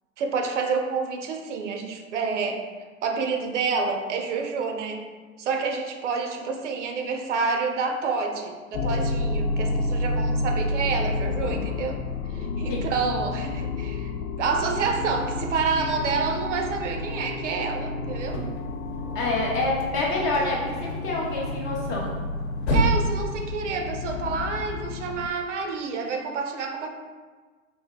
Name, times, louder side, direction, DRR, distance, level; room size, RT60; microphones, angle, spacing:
voice 1, 0.2-2.6 3.0-5.1 5.4-12.0 12.3-14.1 14.4-18.4 22.7-26.9, right 5 dB, 60° right, 4 dB, 0.7 m, -28 dB
sound 1, 8.7-25.3, left 2 dB, 85° left, 0.5 m, -30 dB
sound 2, 18.3-24.1, equal, 50° left, 0.9 m, -31 dB
voice 2, 19.1-22.2, left 2 dB, 20° left, -3 dB, 0.5 m, -27 dB
4.2 x 2.7 x 3.6 m, 1.4 s
hypercardioid pair, 130°, 41 cm